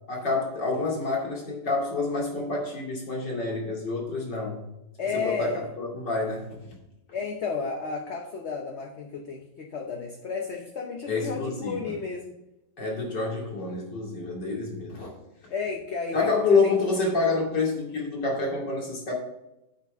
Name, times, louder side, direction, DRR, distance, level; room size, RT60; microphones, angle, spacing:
voice 1, 0.1-4.6 5.1-6.6 11.1-12.0 12.8-15.1 16.1-19.1, left 3 dB, 75° left, -3 dB, 3.2 m, -28 dB
voice 2, 5.0-5.6 7.1-12.3 15.5-16.3 16.6-16.7, left 5 dB, 50° left, 2 dB, 1.0 m, -32 dB
8.6 x 6.0 x 5.0 m, 0.92 s
omnidirectional pair, 1.9 m